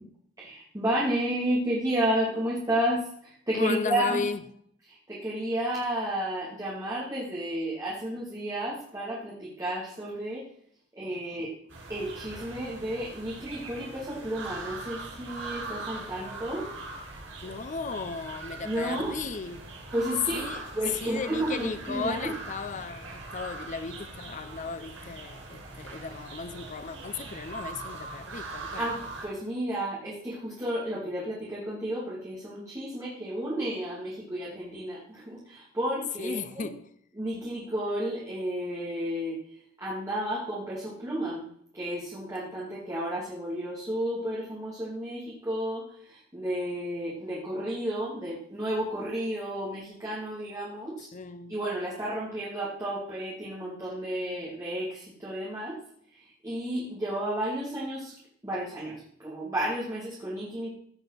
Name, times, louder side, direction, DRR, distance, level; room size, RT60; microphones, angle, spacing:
voice 1, 0.4-4.2 4.9-10.4 11.0-11.5 11.9-16.7 18.6-19.2 19.9-22.3 28.8-36.7 37.1-39.4 39.8-41.5 41.7-51.1 51.5-55.8 56.1-58.1 58.4-60.7, right 1 dB, 15° right, 2.6 m, -32 dB
voice 2, 3.6-4.4 15.9-16.3 17.4-19.6 20.3-20.6 21.0-28.9 36.2-36.9 51.1-51.6, left 4 dB, 40° left, 0.6 m, -36 dB
sound 1, 11.7-29.3, right 3 dB, 90° right, 5.8 m, -41 dB
16.5 x 5.5 x 5.9 m
head